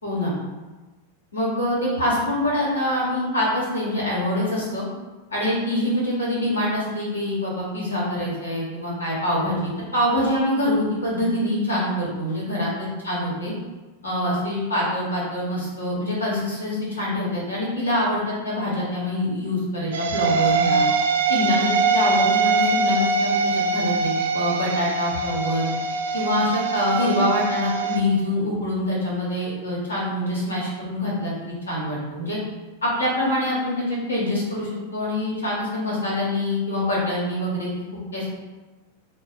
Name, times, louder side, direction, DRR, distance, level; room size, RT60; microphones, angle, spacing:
voice 1, 0.0-0.3 1.3-4.8 5.3-13.5 14.0-20.9 21.3-25.7 26.1-32.4 32.8-37.7 38.1-38.3, left 1 dB, 75° left, -6 dB, 1.1 m, -25 dB
sound 1, 19.9-28.0, right 4 dB, 65° right, 0.3 m, -23 dB
3.8 x 2.2 x 4.0 m, 1.2 s
figure-of-eight pair, 90°, 0 cm